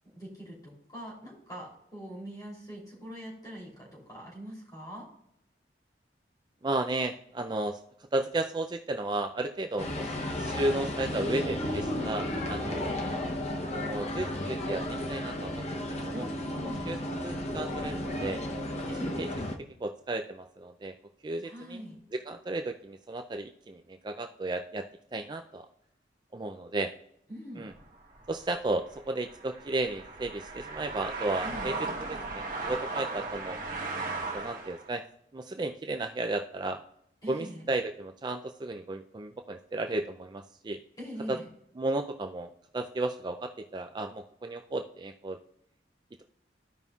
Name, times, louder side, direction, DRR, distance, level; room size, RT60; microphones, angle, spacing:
voice 1, 0.1-5.1 11.9-12.4 16.1-17.0 18.9-19.2 21.4-22.0 27.3-27.7 31.4-31.8 37.2-37.6 41.0-41.5, equal, 20° left, -4 dB, 3.1 m, -43 dB
voice 2, 6.6-7.8 8.1-13.0 13.8-14.8 15.1-16.2 16.9-17.0 17.2-18.4 19.2-19.3 19.8-20.9 21.2-21.8 22.1-24.8 25.1-25.7 26.3-26.9 27.6-27.7 28.3-31.7 32.1-33.6 34.3-35.0 35.3-36.8 37.3-40.8 41.3-41.4 41.8-45.4, right 2 dB, 25° right, 5 dB, 0.4 m, -33 dB
sound 1, 9.8-19.6, left 1 dB, 40° left, 0.8 m, -33 dB
sound 2, 27.7-34.9, right 3 dB, 50° right, 1.6 m, -37 dB
14.5 x 5.3 x 2.4 m, 0.73 s
head